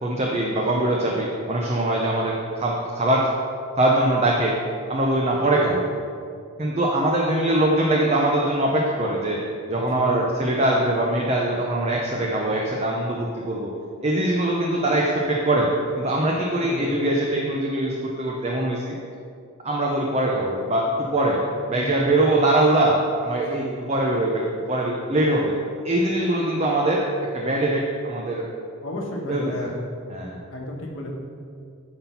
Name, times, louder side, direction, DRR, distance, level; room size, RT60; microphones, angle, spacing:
voice 1, 0.0-3.3 3.8-4.6 4.9-5.9 6.6-9.4 9.7-13.7 14.0-15.7 16.0-18.9 19.6-21.4 21.7-25.5 25.8-28.4 29.3-29.7 30.1-30.4, right 1 dB, 30° right, -2 dB, 0.7 m, -22 dB
voice 2, 9.9-10.2 16.4-16.9 21.7-22.2 23.4-23.8 28.8-29.8 30.5-31.1, left 1 dB, 60° left, 0 dB, 1.3 m, -33 dB
9.5 x 4.3 x 5.6 m, 2.4 s
head